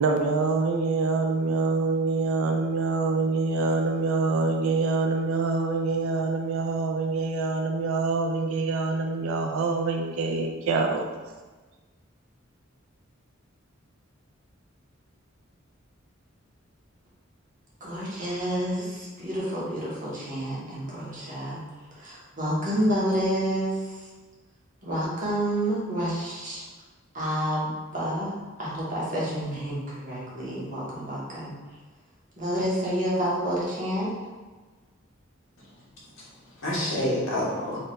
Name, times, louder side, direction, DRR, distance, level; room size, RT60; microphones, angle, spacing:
voice 1, 0.0-11.0, right 3 dB, 80° right, 2 dB, 0.4 m, -25 dB
voice 2, 17.8-21.6 22.0-24.0 24.8-26.6 27.1-28.3 28.6-31.6 32.4-34.1 36.7-36.9, equal, 40° right, -7 dB, 1.1 m, -29 dB
voice 3, 36.1-37.8, left 1 dB, 70° left, -6 dB, 1.2 m, -29 dB
4.2 x 2.6 x 3.2 m, 1.3 s
head